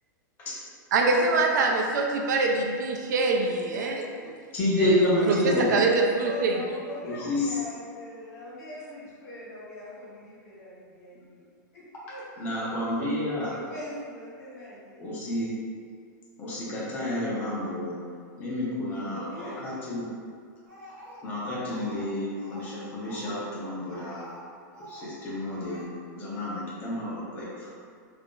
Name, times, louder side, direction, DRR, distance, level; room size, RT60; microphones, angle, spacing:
voice 1, 0.9-4.0 4.8-4.9 5.3-6.6, right 3 dB, 65° right, 1 dB, 0.4 m, -24 dB
voice 2, 4.5-5.7 7.0-7.6 11.9-13.6 15.0-15.5 16.4-18.0 18.4-20.1 21.2-24.3 24.9-27.7, left 1 dB, 20° left, -7 dB, 0.6 m, -29 dB
voice 3, 5.2-11.5 11.7-12.2 12.5-12.6 13.5-15.0 18.8-19.7, left 1 dB, 55° left, -7 dB, 1.0 m, -42 dB
Speech, 20.7-22.1 22.4-24.5 24.7-25.1 25.4-25.8, right 1 dB, 50° right, 1.0 m, -47 dB
2.4 x 2.0 x 3.6 m, 2.2 s
supercardioid pair, 175°, 10 cm